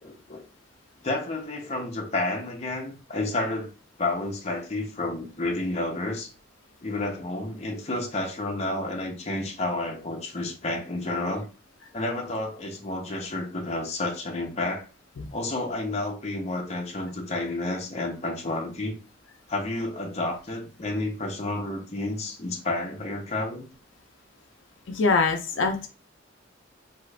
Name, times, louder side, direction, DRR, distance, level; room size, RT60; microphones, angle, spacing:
voice 1, 0.0-0.5 1.0-3.7 4.0-6.3 6.8-11.5 11.9-14.8 15.3-19.0 19.5-23.7, left 2 dB, 35° left, 0.6 m, -30 dB
voice 2, 24.9-25.9, left 4 dB, 75° left, 0.5 m, -24 dB
2.7 x 2.4 x 3.2 m
head